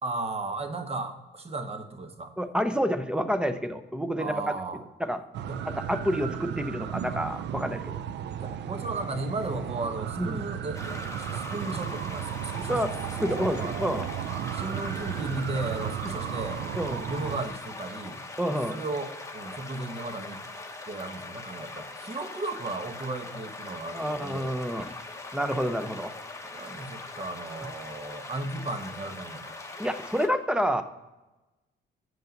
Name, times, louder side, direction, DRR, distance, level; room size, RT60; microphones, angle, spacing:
voice 1, 0.0-2.3 4.2-4.8 5.5-5.6 8.4-12.8 13.2-13.9 14.5-16.6 17.1-18.2 18.7-20.4 20.9-24.5 26.5-29.6, right 2 dB, 30° right, 8 dB, 1.0 m, -35 dB
voice 2, 2.4-4.3 5.0-5.2 5.6-8.0 10.2-10.4 12.7-12.9 13.2-14.1 16.0-16.1 16.8-17.1 18.4-18.8 23.9-24.9 25.3-26.2 26.6-26.7 29.8-30.8, equal, 5° right, 10 dB, 0.6 m, -29 dB
sound 1, 5.3-17.5, right 10 dB, 60° right, 0.4 m, -34 dB
sound 2, 10.7-30.3, left 3 dB, 15° left, 1.0 m, -41 dB
7.8 x 5.4 x 5.1 m, 1.0 s
cardioid pair, 90°, 20 cm